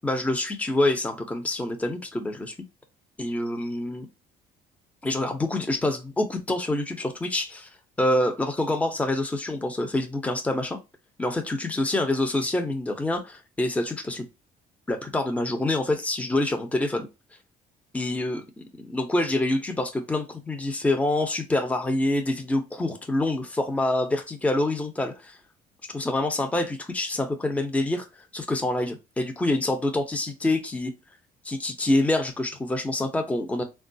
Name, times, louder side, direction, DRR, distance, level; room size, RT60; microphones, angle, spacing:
voice 1, 0.0-2.5 3.2-4.1 5.0-7.7 8.0-10.8 11.2-14.3 14.9-17.1 17.9-25.4 25.9-28.1 28.3-30.9 31.4-33.6, left 2 dB, 10° left, 0.6 m, -26 dB
3.6 x 2.3 x 2.6 m
cardioid pair, 110°, 17 cm